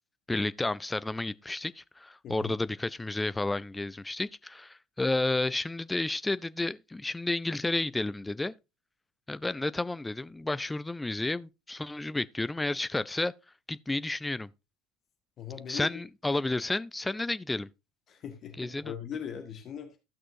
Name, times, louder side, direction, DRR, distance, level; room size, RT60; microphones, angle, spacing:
voice 1, 0.3-8.5 9.3-13.3 13.7-14.5 15.7-17.7 18.6-18.9, left 2 dB, 10° left, 0.4 m, -31 dB
voice 2, 2.2-2.6 15.4-15.9 18.1-20.0, left 8 dB, 40° left, 1.5 m, -40 dB
15.0 x 6.1 x 2.6 m
figure-of-eight pair, 65°, 0 cm